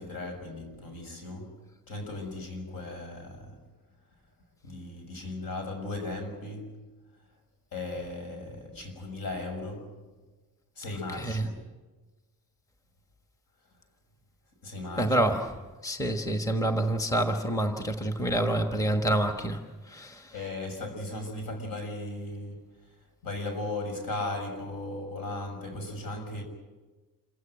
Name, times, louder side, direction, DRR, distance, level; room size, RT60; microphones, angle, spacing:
voice 1, 0.0-1.6 1.9-3.6 4.6-6.8 7.7-9.9 10.8-11.6 14.6-15.2 20.3-22.6 23.2-26.4, left 2 dB, 70° left, 6.4 m, -37 dB
voice 2, 11.2-11.5 15.0-15.5 15.8-19.6 19.9-20.2, right 1 dB, 10° left, 1.2 m, -27 dB
27.5 x 16.0 x 9.0 m
wide cardioid pair, 175°, 36 cm